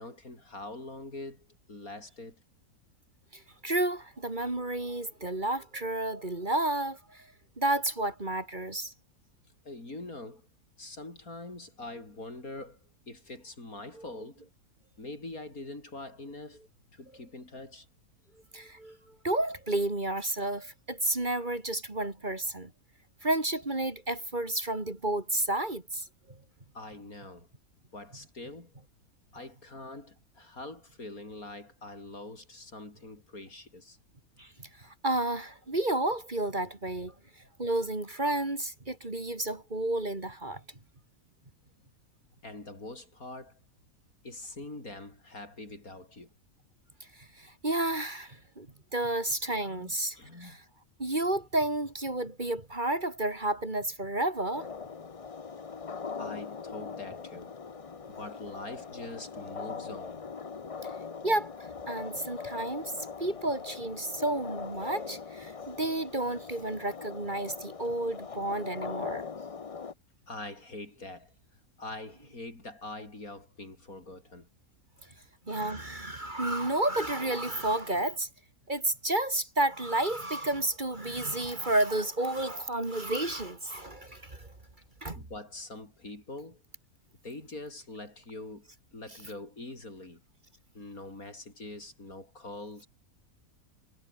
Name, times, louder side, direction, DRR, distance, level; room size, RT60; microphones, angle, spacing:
voice 1, 0.0-2.4 9.6-10.5 10.8-14.4 15.0-16.6 16.9-17.9 26.7-27.5 27.9-28.7 29.3-34.0 42.4-43.6 44.2-46.3 49.7-50.6 56.2-57.5 58.1-60.2 70.3-71.3 71.8-74.5 85.1-86.6 87.2-90.2 90.7-92.9, left 2 dB, 75° left, 6.4 m, -44 dB
voice 2, 3.3-8.9 14.0-14.1 18.5-22.7 23.2-26.4 34.4-40.6 47.0-48.7 48.9-50.6 51.0-54.7 60.8-60.9 61.2-62.9 63.2-69.3 75.0-75.1 75.5-78.3 78.7-84.5 85.0-85.2, right 1 dB, 30° right, 2.9 m, -31 dB
sound 1, 54.5-69.9, left 5 dB, 30° left, 0.7 m, -41 dB
omnidirectional pair, 1.5 m